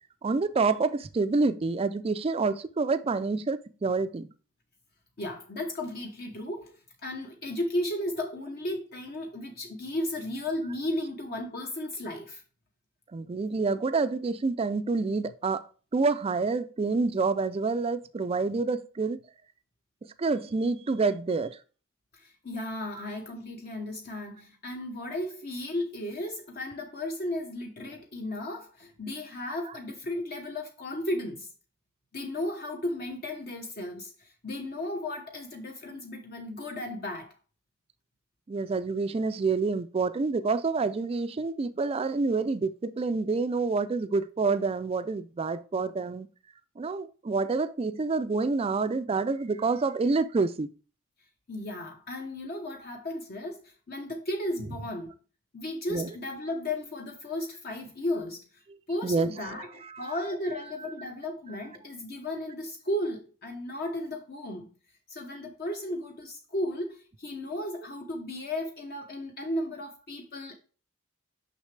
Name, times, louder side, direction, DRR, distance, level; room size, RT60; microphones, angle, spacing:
voice 1, 0.2-4.3 13.1-15.6 15.9-19.2 20.2-21.6 23.0-23.1 38.5-46.3 46.8-50.7 55.9-56.1 59.0-60.2, right 4 dB, 25° right, 0.3 m, -28 dB
voice 2, 5.2-6.7 7.0-12.4 22.1-31.5 32.1-37.3 51.5-55.1 55.5-58.4 58.9-64.7 65.1-70.5, left 1 dB, 45° left, 0.8 m, -34 dB
6.3 x 5.7 x 3.2 m
head